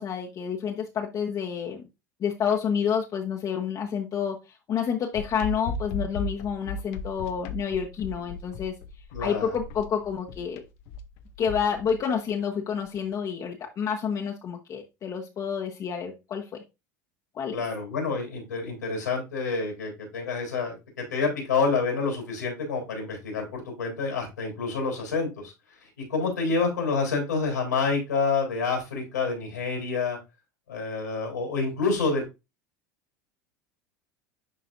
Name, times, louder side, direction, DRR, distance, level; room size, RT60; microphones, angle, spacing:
voice 1, 0.0-1.8 2.2-8.8 9.2-10.6 11.4-16.6 17.3-17.6 26.4-26.5, left 7 dB, 40° left, 0 dB, 1.1 m, -29 dB
sound 1, 5.1-12.0, left 3 dB, 60° left, 0.8 m, -36 dB
voice 2, 9.1-9.6 17.5-25.5 26.1-30.2 30.7-32.2, left 4 dB, 90° left, 1 dB, 3.6 m, -28 dB
10.5 x 4.1 x 2.6 m, 0.24 s
hypercardioid pair, 80°, 9 cm